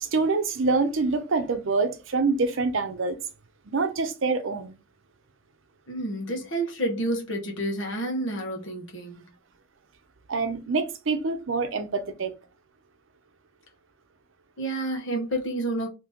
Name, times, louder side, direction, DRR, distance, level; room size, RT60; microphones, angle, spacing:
voice 1, 0.0-3.2 3.7-4.8 10.3-12.3, right 4 dB, 75° right, 0.6 m, -26 dB
voice 2, 5.9-9.2 14.6-15.9, right 1 dB, 75° left, 1.1 m, -29 dB
3.0 x 2.9 x 3.5 m
head